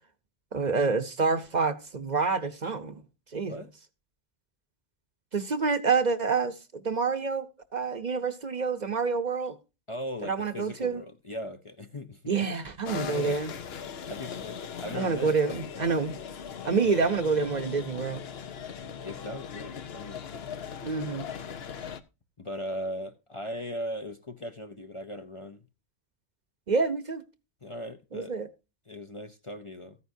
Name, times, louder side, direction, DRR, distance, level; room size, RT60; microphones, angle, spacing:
voice 1, 0.5-3.0 3.3-3.6 5.3-9.6 10.2-11.0 12.3-13.5 14.9-16.2 16.6-18.2 20.8-21.3 26.7-27.2 28.1-28.5, right 4 dB, 45° right, 0.9 m, -27 dB
voice 2, 9.9-12.2 13.0-13.4 14.1-15.3 19.0-20.5 22.4-25.6 27.6-28.3 28.9-30.0, left 1 dB, 35° left, 0.7 m, -38 dB
sound 1, 12.8-22.0, left 7 dB, 70° left, 1.0 m, -39 dB
14.0 x 9.6 x 2.7 m
omnidirectional pair, 1.1 m